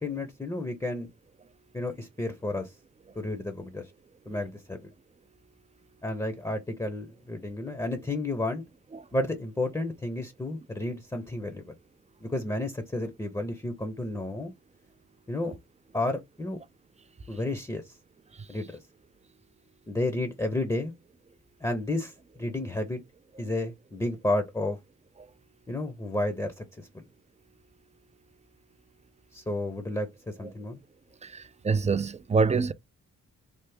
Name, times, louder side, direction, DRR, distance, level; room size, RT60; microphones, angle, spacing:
voice 1, 0.0-1.1 1.7-2.7 3.2-3.9 4.3-4.9 6.0-8.6 9.1-11.8 12.2-14.5 15.3-15.5 15.9-16.6 17.3-17.9 18.5-18.8 19.9-20.9 21.6-22.1 22.4-23.0 23.4-24.8 25.7-27.0 29.3-30.8, left 2 dB, 10° left, 0.7 m, -31 dB
voice 2, 31.3-32.7, right 4 dB, 25° right, 0.4 m, -25 dB
3.4 x 2.0 x 3.4 m
cardioid pair, 65°, 29 cm